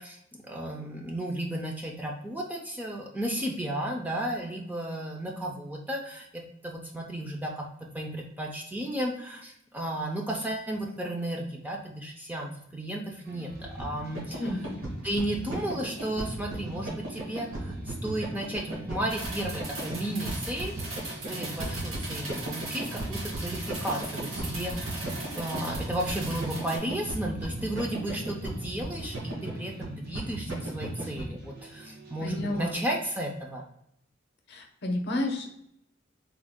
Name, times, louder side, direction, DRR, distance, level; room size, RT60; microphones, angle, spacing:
voice 1, 0.0-7.7 7.9-13.5 13.8-14.4 15.0-20.8 21.3-33.7, right 1 dB, 10° right, 0 dB, 0.4 m, -34 dB
sound 1, 13.2-32.8, right 1 dB, 50° right, 0.8 m, -49 dB
sound 2, 13.5-31.3, right 1 dB, 65° right, 1.2 m, -36 dB
voice 2, 14.4-14.8 32.2-32.8 34.5-35.6, left 1 dB, 55° left, 3 dB, 0.6 m, -31 dB
sound 3, 19.1-26.8, right 2 dB, 85° right, 1.3 m, -39 dB
3.5 x 2.2 x 3.4 m, 0.77 s
head